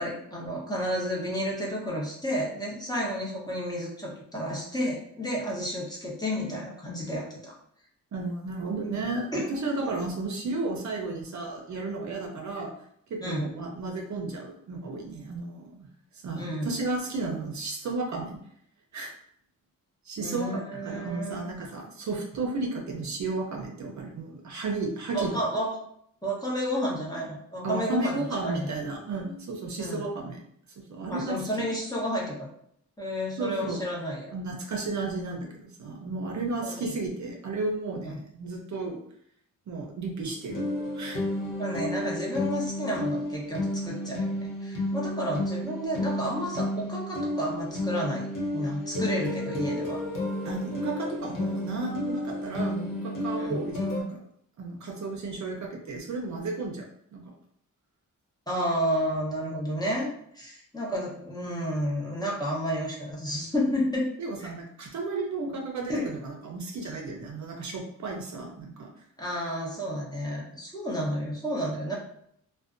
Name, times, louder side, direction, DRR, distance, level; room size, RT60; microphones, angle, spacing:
voice 1, 0.0-7.5 9.3-9.5 13.2-13.5 16.3-16.7 20.2-21.5 25.1-25.8 26.2-28.7 29.8-30.1 31.1-32.5 33.0-34.3 36.6-36.9 38.0-38.2 41.6-50.0 53.4-53.6 58.5-64.1 64.4-64.5 65.9-66.1 69.2-71.9, equal, 10° left, -5 dB, 0.8 m, -31 dB
voice 2, 8.1-12.7 13.1-15.9 16.1-18.4 18.9-19.1 20.0-25.4 27.6-30.4 30.8-31.4 33.4-33.8 34.3-39.0 39.7-41.2 50.4-54.2 54.6-56.9 57.1-57.2 64.2-68.9, right 3 dB, 60° right, 1 dB, 0.5 m, -33 dB
sound 1, 40.5-54.0, left 1 dB, 65° left, 0.7 m, -32 dB
2.5 x 2.1 x 2.4 m, 0.69 s
cardioid pair, 90°, 33 cm